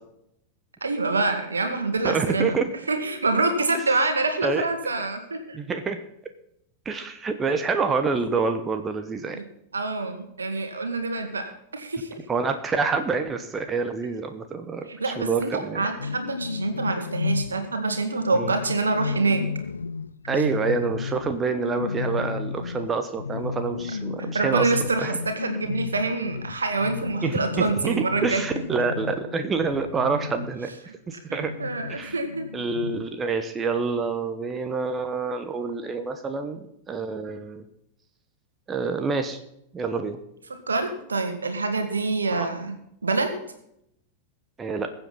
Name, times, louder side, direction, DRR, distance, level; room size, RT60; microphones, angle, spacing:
voice 1, 0.8-2.6 2.9-5.6 9.3-9.4 9.7-12.1 14.8-19.4 24.2-28.4 31.3-32.5 40.7-42.7 43.0-43.4, right 3 dB, 75° right, 6 dB, 2.0 m, -26 dB
voice 2, 2.0-2.7 4.4-4.7 5.5-6.0 6.8-9.4 12.3-15.9 18.3-18.5 20.3-24.7 25.0-25.2 27.2-30.7 31.1-31.5 31.9-32.2 32.5-37.6 38.7-39.4 39.7-40.2 42.3-42.5 44.6-44.9, right 4 dB, 20° right, 8 dB, 1.1 m, -27 dB
sound 1, 15.9-30.6 31.4-33.2, left 5 dB, 75° left, 0.4 m, -33 dB
21.5 x 7.9 x 4.1 m, 0.77 s
figure-of-eight pair, 90°, 0 cm